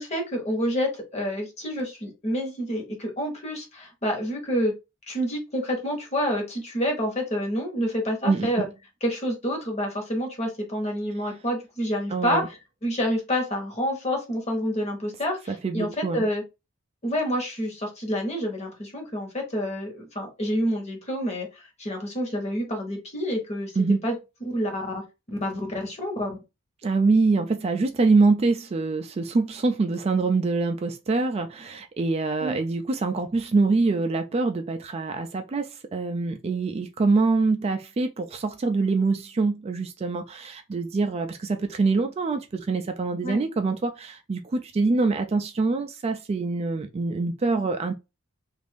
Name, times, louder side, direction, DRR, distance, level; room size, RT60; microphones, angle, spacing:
voice 1, 0.0-4.7 5.1-8.7 9.0-16.4 17.0-23.7 24.0-24.2 24.5-25.0 25.4-26.4 32.4-32.6 43.2-43.4, equal, 30° left, 1.0 m, -28 dB
voice 2, 12.1-12.5 15.5-16.3 23.8-24.0 26.8-47.9, right 3 dB, 30° right, 0.3 m, -24 dB
2.6 x 2.5 x 3.5 m
head